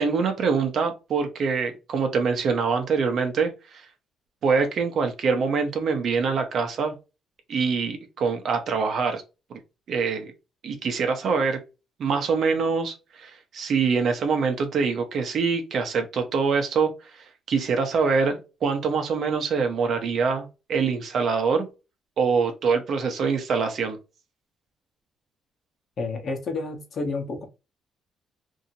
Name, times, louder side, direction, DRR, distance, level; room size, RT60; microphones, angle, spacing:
voice 1, 0.0-3.8 4.4-7.0 7.5-9.2 9.5-9.6 9.9-10.3 10.6-11.6 12.0-16.9 17.5-21.7 22.2-24.0, right 5 dB, 60° right, 6 dB, 0.8 m, -24 dB
voice 2, 26.0-27.4, left 3 dB, 50° left, 3 dB, 0.9 m, -30 dB
2.7 x 2.6 x 2.8 m, 0.28 s
cardioid pair, 110°, 0 cm